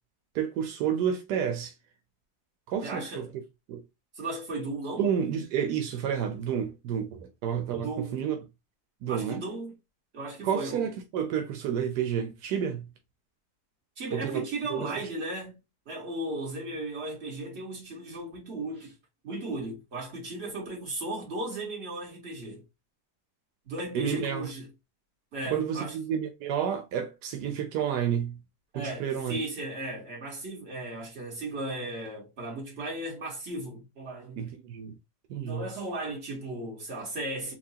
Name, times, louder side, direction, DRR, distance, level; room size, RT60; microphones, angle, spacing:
voice 1, 0.3-1.7 2.7-3.3 3.7-3.8 5.0-8.4 9.0-9.4 10.4-12.9 14.1-14.4 14.7-14.9 23.9-24.5 25.5-28.4 28.7-29.4 34.4-35.0 35.3-35.7, right 8 dB, 85° right, 1.2 m, -30 dB
voice 2, 2.8-3.3 4.1-5.1 7.7-8.2 9.1-9.7 10.1-10.9 14.0-15.6 15.8-18.9 19.2-22.6 23.6-24.7 25.3-25.9 28.7-34.4 35.3-37.5, right 2 dB, 40° right, 1.7 m, -36 dB
4.4 x 2.4 x 2.7 m
omnidirectional pair, 1.7 m